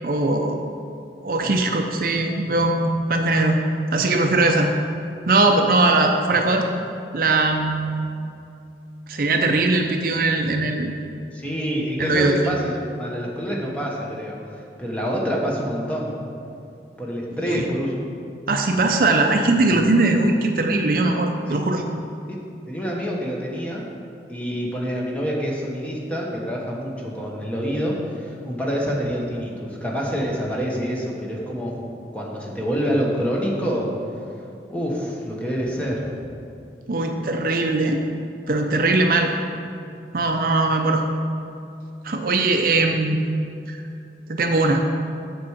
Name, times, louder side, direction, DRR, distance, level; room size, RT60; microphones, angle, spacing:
voice 1, 0.0-0.6 1.2-3.6 3.9-4.7 5.3-6.6 7.1-8.1 9.1-10.9 12.0-12.5 17.4-17.6 18.5-21.8 36.9-38.0 38.5-39.3 40.1-41.0 42.0-43.2 43.7-43.8 44.3-44.8, right 2 dB, 50° right, 3 dB, 0.5 m, -20 dB
voice 2, 11.3-16.2 17.0-18.0 19.0-19.4 21.5-21.6 22.3-22.4 22.7-23.9 24.3-31.8 32.1-33.9 34.7-36.2, equal, 10° left, -3 dB, 1.1 m, -27 dB
7.7 x 4.7 x 7.2 m, 2.6 s
head